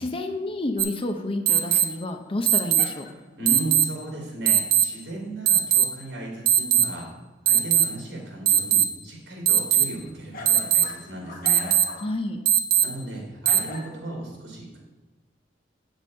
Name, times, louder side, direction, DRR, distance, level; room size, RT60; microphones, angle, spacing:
voice 1, 0.0-3.1 12.0-12.5, left 1 dB, 30° left, 6 dB, 0.7 m, -30 dB
sound 1, 0.8-0.9 1.5-1.8 2.5-2.8 3.5-3.8 4.5-4.8 5.5-5.8 6.5-6.8 7.5-7.8 8.5-8.8 9.5-9.8 10.5-10.8 11.5-11.8 12.5-12.8 13.5-13.6, right 10 dB, 50° right, 0.9 m, -18 dB
sound 2, 1.5-2.3 2.8-3.4 10.3-12.1 12.8-12.9 13.5-14.1, left 2 dB, 50° left, 1.3 m, -41 dB
voice 2, 3.4-7.1 7.5-11.7 12.8-14.8, right 2 dB, 70° right, -2 dB, 3.5 m, -35 dB
8.9 x 6.4 x 5.2 m, 1.1 s
head